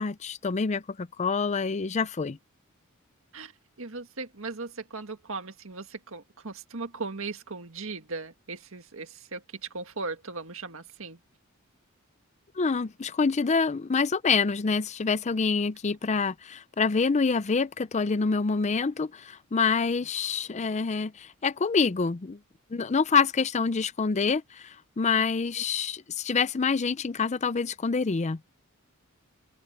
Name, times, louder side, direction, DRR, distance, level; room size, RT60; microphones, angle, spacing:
voice 1, 0.0-2.4 12.6-22.4 22.7-28.4, left 5 dB, 35° left, 0.5 m, -26 dB
voice 2, 3.8-11.2, right 3 dB, 65° right, 1.9 m, -38 dB
head